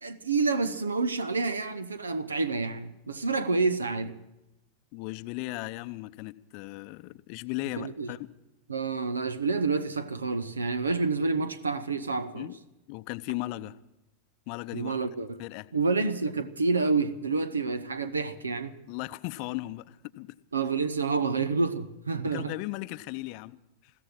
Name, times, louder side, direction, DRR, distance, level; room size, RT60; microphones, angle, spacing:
voice 1, 0.0-4.2 7.8-8.1 8.7-12.5 14.7-15.4 15.7-18.7 20.5-22.6, right 4 dB, 75° right, 0.9 m, -28 dB
voice 2, 4.9-8.3 12.3-12.6 12.9-13.8 14.5-15.0 15.4-15.7 18.9-20.3 22.2-23.9, left 20 dB, 45° left, 0.7 m, -37 dB
15.0 x 14.5 x 6.3 m
figure-of-eight pair, 90°, 0 cm